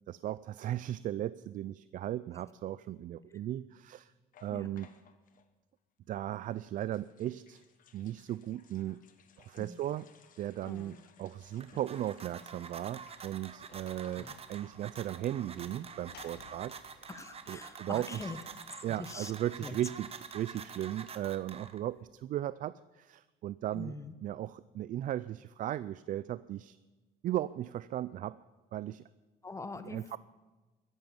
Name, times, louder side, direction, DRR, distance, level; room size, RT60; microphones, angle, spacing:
voice 1, 0.1-4.1 4.4-4.9 6.1-7.6 7.9-9.1 9.4-10.1 10.4-17.1 17.5-18.3 18.8-20.1 20.3-23.9 24.2-26.8 27.2-28.4 28.7-29.0 29.9-30.2, right 12 dB, 50° right, 17 dB, 0.4 m, -37 dB
sound 1, 4.3-5.5 6.3-14.7 15.0-15.1 15.2-15.5, left 7 dB, 55° left, 1.3 m, -63 dB
voice 2, 10.6-11.0 14.1-14.4 17.1-18.4 18.9-19.3 19.6-19.8 23.7-24.1 29.4-30.0, left 3 dB, 15° left, 11 dB, 1.1 m, -44 dB
sound 2, 11.4-22.0, right 6 dB, 35° right, 1.1 m, -48 dB
Sliding door / Slam, 12.5-18.2, left 10 dB, 70° left, 1.0 m, -61 dB
13.0 x 11.0 x 7.2 m, 1.2 s
cardioid pair, 110°, 17 cm